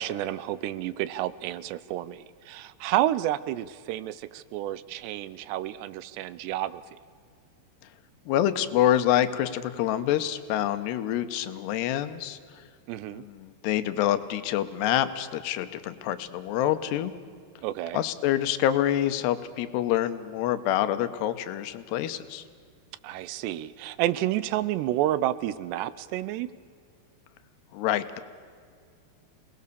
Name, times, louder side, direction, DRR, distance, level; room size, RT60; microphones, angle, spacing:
voice 1, 0.0-6.8 12.9-13.2 17.6-18.0 23.0-26.5, right 13 dB, 80° right, 16 dB, 2.7 m, -30 dB
voice 2, 8.3-12.6 13.1-17.1 17.9-22.4 27.7-28.2, left 12 dB, 75° left, 11 dB, 3.0 m, -27 dB
28.0 x 19.5 x 6.8 m, 2.2 s
omnidirectional pair, 5.1 m